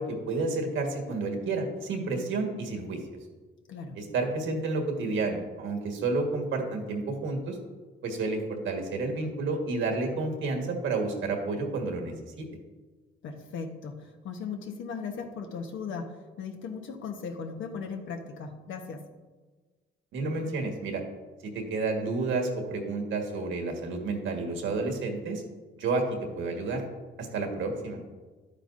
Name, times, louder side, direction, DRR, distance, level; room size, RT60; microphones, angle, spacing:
voice 1, 0.0-3.0 3.9-7.6 8.0-12.5 20.1-21.0 21.4-25.4 25.8-26.8 27.2-28.0, right 3 dB, 75° right, 2 dB, 1.6 m, -30 dB
voice 2, 13.2-19.0, left 5 dB, 75° left, 5 dB, 1.2 m, -37 dB
11.0 x 8.9 x 2.6 m, 1.3 s
cardioid pair, 90°, 20 cm